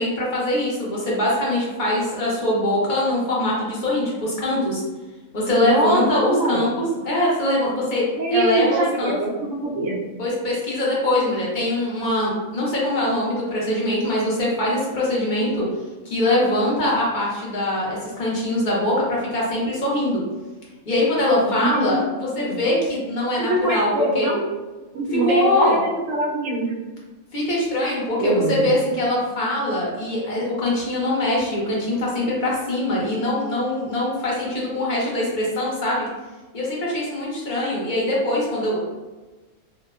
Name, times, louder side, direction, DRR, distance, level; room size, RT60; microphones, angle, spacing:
voice 1, 0.0-4.8 5.3-9.2 10.2-15.7 16.0-20.2 20.9-23.9 24.1-24.3 25.2-25.8 27.3-36.1 36.5-38.8, left 1 dB, 45° left, -5 dB, 0.8 m, -22 dB
voice 2, 5.6-6.6 8.2-10.0 21.4-22.6 23.4-24.4 24.9-26.7 27.8-28.7, right 1 dB, 80° right, -3 dB, 1.0 m, -24 dB
2.7 x 2.1 x 2.3 m, 1.2 s
omnidirectional pair, 1.4 m